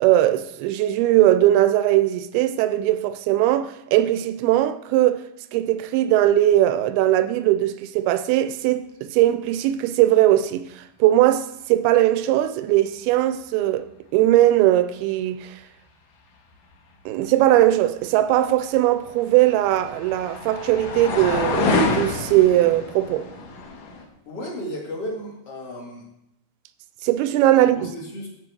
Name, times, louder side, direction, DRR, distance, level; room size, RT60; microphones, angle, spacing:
voice 1, 0.0-5.2 5.5-13.9 14.1-15.6 17.1-23.3 27.0-27.9, right 14 dB, 80° right, 2.3 m, -19 dB
sound 1, 18.8-24.0, left 3 dB, 65° left, 2.6 m, -27 dB
voice 2, 24.3-26.1 27.6-28.3, equal, 45° left, 2.3 m, -34 dB
13.5 x 6.0 x 4.7 m
omnidirectional pair, 4.7 m